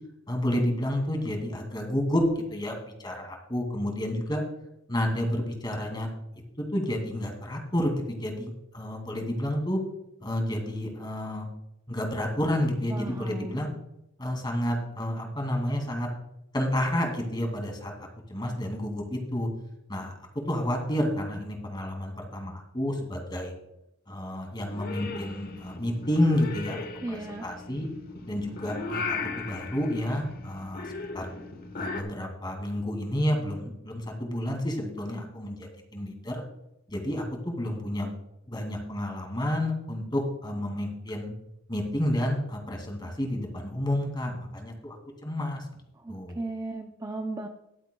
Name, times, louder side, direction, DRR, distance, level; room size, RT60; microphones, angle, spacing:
voice 1, 0.3-2.2 2.5-2.7 3.0-4.4 4.9-6.1 6.7-9.8 10.2-11.5 11.9-13.7 14.2-16.1 16.5-17.9 18.3-19.5 19.9-20.2 20.5-23.5 24.1-27.9 28.2-30.9 31.1-31.3 31.7-36.4 36.9-38.1 38.5-41.3 41.7-45.0 45.2-45.6 46.1-46.4, left 1 dB, 20° left, 2 dB, 2.4 m, -30 dB
voice 2, 12.9-13.6 27.0-27.4 46.0-47.5, right 2 dB, 20° right, 4 dB, 0.5 m, -35 dB
Purr / Meow, 24.6-32.0, left 4 dB, 50° left, 1.2 m, -37 dB
22.0 x 8.0 x 2.3 m, 0.85 s
head